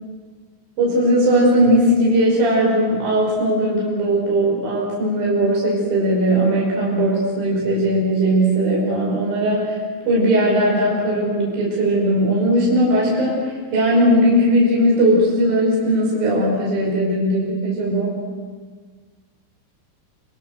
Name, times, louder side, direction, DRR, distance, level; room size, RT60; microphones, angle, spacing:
voice 1, 0.8-9.8 10.1-18.2, right 1 dB, 50° right, -3 dB, 6.9 m, -18 dB
26.5 x 26.5 x 6.6 m, 1.5 s
omnidirectional pair, 5.7 m